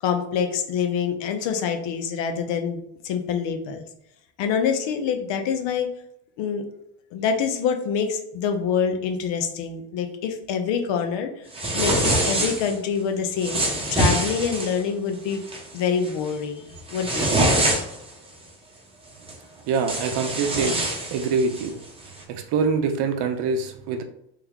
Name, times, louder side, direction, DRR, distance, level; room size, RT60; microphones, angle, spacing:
voice 1, 0.0-3.9 4.4-5.9 6.4-6.6 7.1-11.3 11.7-15.4 15.7-17.5, left 7 dB, 75° left, 6 dB, 0.7 m, -26 dB
sound 1, 11.5-12.7 13.4-14.8 15.3-15.6 16.0-16.3 16.7-18.1 19.3-19.4 19.7-21.7, right 1 dB, 10° right, 0.8 m, -24 dB
voice 2, 19.7-20.8 21.1-21.8 22.3-24.0, right 5 dB, 65° right, 7 dB, 0.6 m, -24 dB
3.2 x 2.1 x 3.7 m, 0.76 s
cardioid pair, 110°, 45 cm